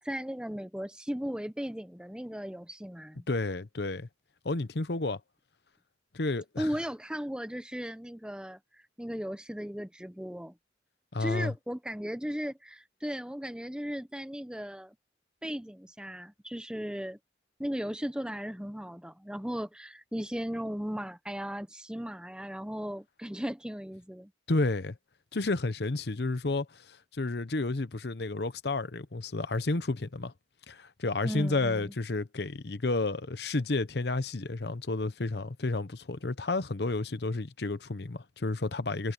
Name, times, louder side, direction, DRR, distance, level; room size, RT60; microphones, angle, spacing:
voice 1, 0.0-3.2 6.6-10.5 11.2-15.0 15.4-17.2 17.6-24.3 31.2-31.9, equal, 5° right, 0.8 m, -36 dB
voice 2, 3.3-4.1 4.4-5.2 6.1-6.7 11.1-11.5 24.5-25.0 25.3-30.3 30.7-39.1, left 2 dB, 60° left, 0.9 m, -31 dB
head